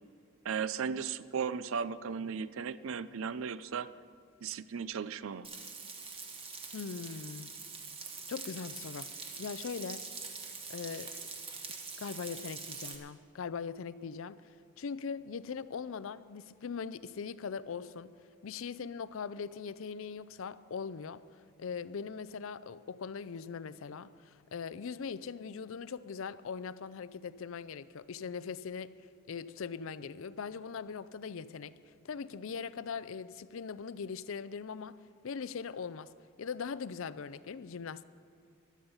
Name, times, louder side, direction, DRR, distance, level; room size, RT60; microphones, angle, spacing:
voice 1, 0.4-3.9 4.4-5.5, right 6 dB, 60° right, 0.4 m, -36 dB
Frying (food), 5.4-13.0, right 4 dB, 25° right, 1.3 m, -44 dB
voice 2, 6.7-7.6 8.3-10.1 10.7-11.1 12.0-14.4 14.8-18.1 18.4-21.2 21.6-29.0 29.3-31.8 32.0-36.1 36.4-38.0, left 6 dB, 60° left, 0.4 m, -40 dB
15.5 x 11.5 x 5.5 m
head